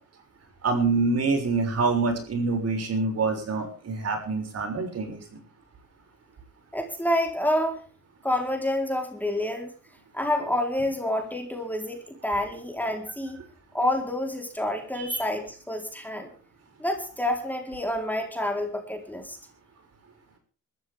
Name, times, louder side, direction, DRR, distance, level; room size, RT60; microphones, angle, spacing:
voice 1, 0.6-5.4 14.9-15.2, right 3 dB, 55° right, 4 dB, 6.6 m, -26 dB
voice 2, 6.7-7.8 8.2-9.7 10.1-13.4 13.7-16.3 16.8-19.4, left 1 dB, 5° left, 3 dB, 4.1 m, -28 dB
24.0 x 14.0 x 3.6 m, 0.37 s
cardioid pair, 90°, 30 cm